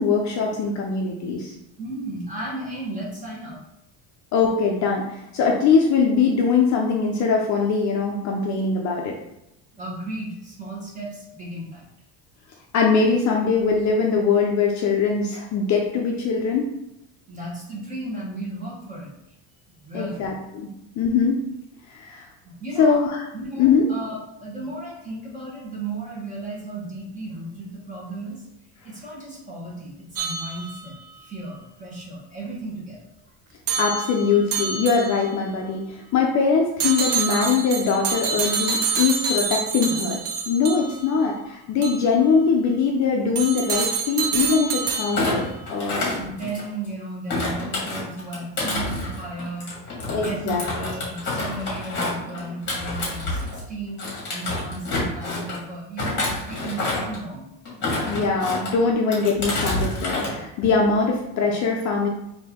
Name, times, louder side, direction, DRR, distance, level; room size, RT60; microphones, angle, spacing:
voice 1, 0.0-1.5 4.3-9.1 12.7-16.7 19.9-20.7 21.0-21.4 21.9-22.3 22.8-23.2 23.6-23.9 33.8-40.2 40.5-46.1 50.1-50.6 58.1-62.1, left 5 dB, 45° left, 0 dB, 0.5 m, -22 dB
voice 2, 1.8-3.6 9.7-11.8 17.3-19.1 19.7-20.2 22.4-23.0 23.3-28.5 28.8-33.1 46.1-54.0 54.3-57.5, right 2 dB, 20° right, -4 dB, 1.2 m, -34 dB
sound 1, 30.2-31.1 33.7-35.4 36.8-41.1 41.8-42.0 43.4-45.5, right 5 dB, 55° right, 0.6 m, -27 dB
Thump thud, 45.1-46.9 47.3-53.6 54.0-55.6 56.0-57.2 57.6-58.7 59.1-60.3 60.6-61.0, left 2 dB, 25° left, 1.4 m, -28 dB
4.2 x 2.8 x 3.5 m, 0.83 s
cardioid pair, 155°, 42 cm